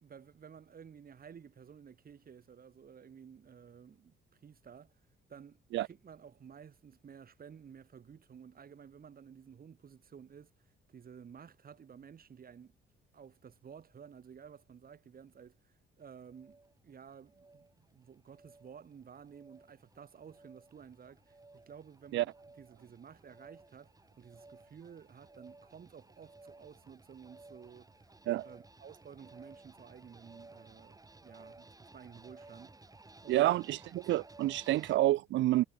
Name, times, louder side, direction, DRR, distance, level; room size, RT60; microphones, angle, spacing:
voice 1, 0.0-5.0 5.3-10.5 10.9-12.7 13.1-27.9 28.4-32.9 33.2-33.5, right 7 dB, 50° right, 3.3 m, -53 dB
sound 1, 16.0-35.0, right 2 dB, 15° right, 4.9 m, -57 dB
voice 2, 33.3-35.7, right 15 dB, 70° right, 0.4 m, -28 dB
cardioid pair, 90°, 20 cm